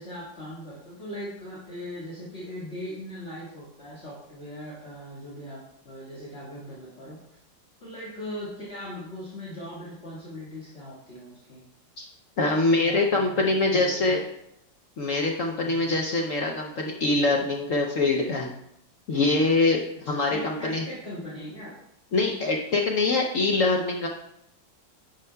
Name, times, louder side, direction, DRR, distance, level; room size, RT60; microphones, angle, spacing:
voice 1, 0.0-7.4 7.8-11.6 12.7-14.2 15.6-16.1 20.0-21.7, equal, 35° left, -9 dB, 2.1 m, -39 dB
voice 2, 12.4-14.2 15.0-18.5 19.1-20.8 22.1-24.1, left 3 dB, 65° left, 1 dB, 0.8 m, -24 dB
9.8 x 6.9 x 2.2 m, 0.80 s
omnidirectional pair, 2.0 m